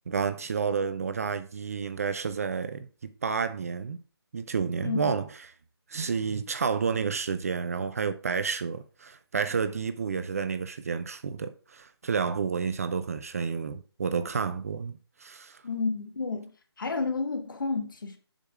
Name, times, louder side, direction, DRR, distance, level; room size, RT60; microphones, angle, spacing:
voice 1, 0.1-4.0 4.3-5.2 5.9-15.6, right 5 dB, 35° right, 0.5 m, -30 dB
voice 2, 15.6-16.5 16.8-18.2, left 4 dB, 50° left, 1.8 m, -30 dB
7.3 x 5.4 x 4.7 m
figure-of-eight pair, 150°, 14 cm